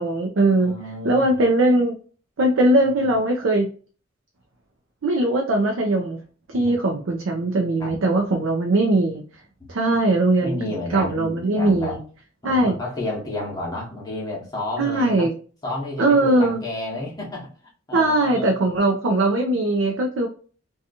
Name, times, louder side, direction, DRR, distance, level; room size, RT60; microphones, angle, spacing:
voice 1, 0.0-0.7 1.0-1.9 2.4-3.7 5.0-6.2 6.5-9.2 9.7-10.6 10.9-12.0 12.4-12.7 14.8-15.3 16.0-16.6 17.9-20.3, right 2 dB, 80° right, 2 dB, 0.5 m, -20 dB
voice 2, 0.6-1.4 3.0-3.1 6.5-6.7 7.8-7.9 10.4-12.0 12.4-15.3 15.6-17.5 17.9-18.5, left 2 dB, 20° left, -4 dB, 0.8 m, -31 dB
2.7 x 2.3 x 2.6 m, 0.39 s
head